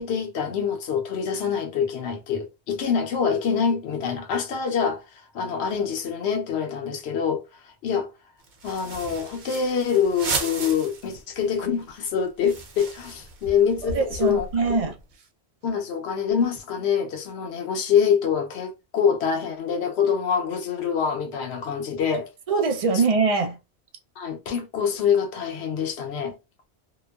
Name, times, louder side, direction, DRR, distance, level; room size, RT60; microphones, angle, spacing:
voice 1, 0.0-8.1 8.6-14.8 15.6-22.3 22.9-23.0 24.2-26.4, left 7 dB, 75° left, 0.9 m, -25 dB
sound 1, 8.4-11.2 11.5-11.6 11.9-15.0, right 4 dB, 85° right, 1.0 m, -35 dB
voice 2, 13.8-14.9 22.5-23.6, right 4 dB, 55° right, 0.4 m, -23 dB
2.9 x 2.0 x 2.2 m
omnidirectional pair, 1.1 m